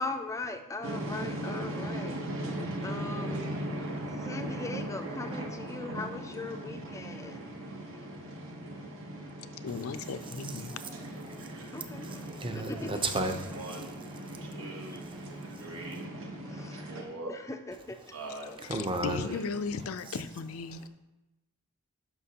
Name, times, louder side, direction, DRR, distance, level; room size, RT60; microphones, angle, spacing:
voice 1, 0.0-2.2 2.8-3.6 4.1-7.5 7.9-8.0 11.7-12.1 12.5-13.0 14.9-15.0 16.4-18.2, left 2 dB, 15° left, 0.4 m, -40 dB
sound 1, 0.8-17.0, right 1 dB, 65° right, 1.1 m, -39 dB
voice 2, 9.6-10.8 18.6-20.9, left 5 dB, 75° left, 0.5 m, -36 dB
voice 3, 12.0-13.6 18.7-19.2, right 2 dB, 25° right, 0.6 m, -33 dB
voice 4, 13.5-14.0 14.4-14.9 15.6-16.0 16.9-17.4 18.1-18.6 19.2-19.4, right 2 dB, 85° right, 1.4 m, -42 dB
11.0 x 5.9 x 2.8 m
head